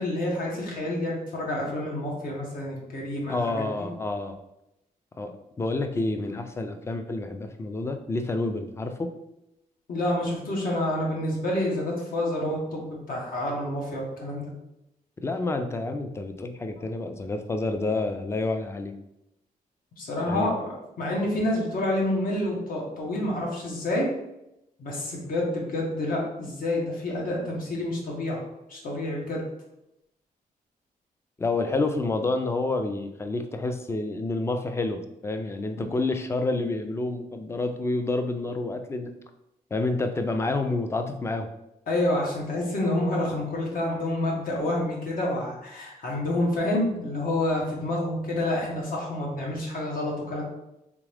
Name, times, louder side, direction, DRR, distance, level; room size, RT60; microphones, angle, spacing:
voice 1, 0.0-3.9 9.9-14.5 20.0-24.1 24.8-28.4 28.7-29.4 41.9-50.4, left 1 dB, 70° left, -2 dB, 1.3 m, -28 dB
voice 2, 3.3-4.4 5.2-9.1 15.2-18.9 20.3-20.5 31.4-39.1 39.7-41.5, left 2 dB, 15° left, 7 dB, 0.4 m, -29 dB
3.6 x 3.4 x 3.3 m, 0.87 s
wide cardioid pair, 140°, 15 cm